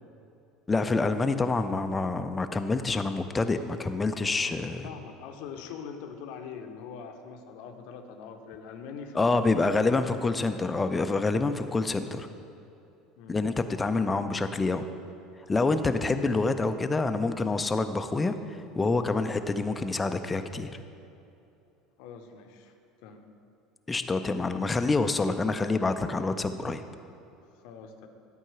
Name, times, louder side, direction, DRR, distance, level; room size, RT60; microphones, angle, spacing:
voice 1, 0.7-4.9 9.1-12.3 13.3-14.8 15.5-20.8 23.9-26.8, left 3 dB, 15° left, 9 dB, 0.5 m, -27 dB
voice 2, 4.6-10.3 13.2-13.5 14.0-14.4 22.0-22.7 23.0-23.3 27.6-28.1, left 6 dB, 55° left, 6 dB, 0.7 m, -43 dB
12.0 x 4.6 x 5.9 m, 2.7 s
figure-of-eight pair, 65°, 0 cm